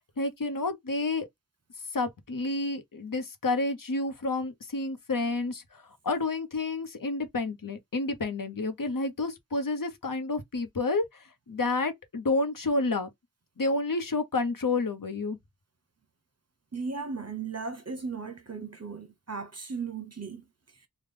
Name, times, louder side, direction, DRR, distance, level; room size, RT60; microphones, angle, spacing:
voice 1, 0.2-1.3 1.9-13.1 13.6-15.4, left 3 dB, 55° left, 0.9 m, -30 dB
voice 2, 16.7-20.4, right 4 dB, 40° right, 1.0 m, -36 dB
3.3 x 2.3 x 3.7 m
wide cardioid pair, 60°, 39 cm